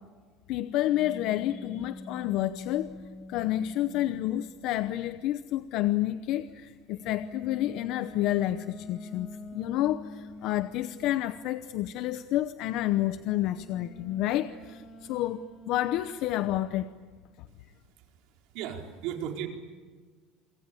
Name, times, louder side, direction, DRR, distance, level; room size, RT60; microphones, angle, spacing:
voice 1, 0.5-2.9 3.3-16.9, left 14 dB, 50° left, 12 dB, 0.8 m, -29 dB
sound 1, 0.8-4.7 7.0-11.3 13.3-17.1, left 2 dB, 30° left, 5.9 m, -46 dB
voice 2, 17.7-19.5, right 9 dB, 60° right, 3 dB, 4.3 m, -37 dB
27.5 x 24.5 x 8.5 m, 1.5 s
cardioid pair, 170°, 0 cm